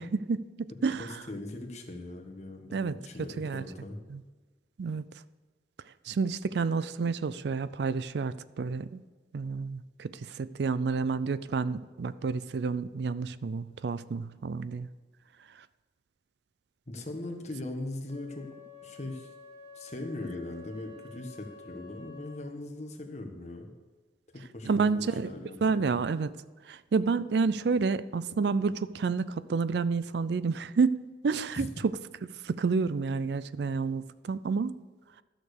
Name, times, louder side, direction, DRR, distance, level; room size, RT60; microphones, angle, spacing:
voice 1, 0.0-1.1 2.7-3.0 3.4-3.6 4.1-4.2 4.8-5.0 6.1-9.0 9.3-14.9 24.7-25.3 25.6-26.3 26.7-31.7 32.4-34.7, right 4 dB, 65° right, 16 dB, 0.4 m, -29 dB
voice 2, 1.0-4.0 16.9-18.5 18.8-19.3 19.7-23.7 24.3-25.9 31.5-31.8, left 2 dB, 40° left, 3 dB, 1.4 m, -40 dB
Wind instrument woodwind instrument, 18.1-22.6, left 4 dB, 85° right, 3.8 m, -50 dB
12.5 x 6.6 x 6.6 m, 1.3 s
head